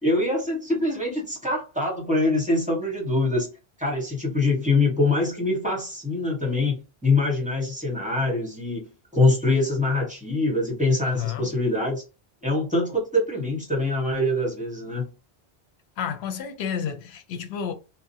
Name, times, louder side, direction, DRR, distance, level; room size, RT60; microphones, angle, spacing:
voice 1, 0.0-3.5 3.8-8.8 9.1-12.0 12.4-15.1, left 2 dB, 10° right, 0.9 m, -24 dB
voice 2, 11.0-11.5 16.0-17.7, left 8 dB, 90° left, 0.8 m, -31 dB
2.7 x 2.0 x 2.6 m
omnidirectional pair, 1.0 m